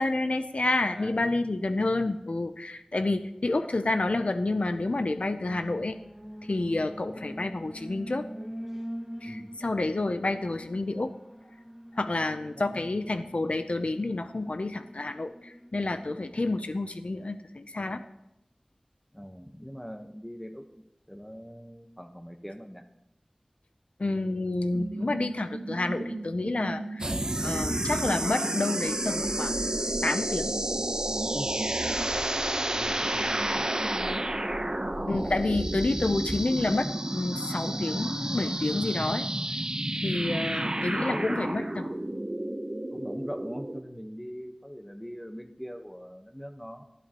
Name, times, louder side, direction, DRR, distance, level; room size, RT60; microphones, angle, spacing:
voice 1, 0.0-6.0 6.4-8.3 9.2-11.1 11.9-18.0 24.0-27.1 27.4-29.6 30.0-30.5 35.1-39.3 40.0-41.9, left 2 dB, 80° left, 9 dB, 0.6 m, -29 dB
voice 2, 0.9-1.5 9.2-9.6 12.7-12.9 19.1-20.7 21.1-22.8 31.3-31.5 32.7-34.3 34.6-34.8 40.3-42.0 42.9-46.8, equal, 5° left, 6 dB, 1.2 m, -41 dB
Alarm, 3.2-16.6, equal, 10° right, 1.8 m, -44 dB
sound 1, 24.7-32.1, right 2 dB, 70° right, 0.8 m, -37 dB
sound 2, 27.0-43.8, right 1 dB, 40° right, 0.9 m, -30 dB
19.0 x 12.0 x 3.0 m, 0.88 s
wide cardioid pair, 45°, 2 cm